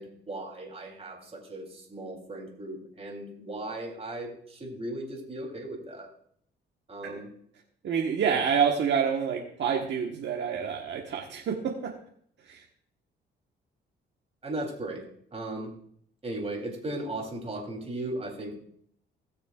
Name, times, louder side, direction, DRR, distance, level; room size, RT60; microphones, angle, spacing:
voice 1, 0.0-6.1 6.9-7.3 8.3-8.4 14.4-15.0 15.3-15.7 16.2-18.6, right 1 dB, 30° right, 1 dB, 3.4 m, -37 dB
voice 2, 7.8-11.9 12.4-12.6, right 7 dB, 65° right, -1 dB, 1.4 m, -28 dB
18.5 x 6.7 x 2.5 m, 0.63 s
cardioid pair, 90°, 20 cm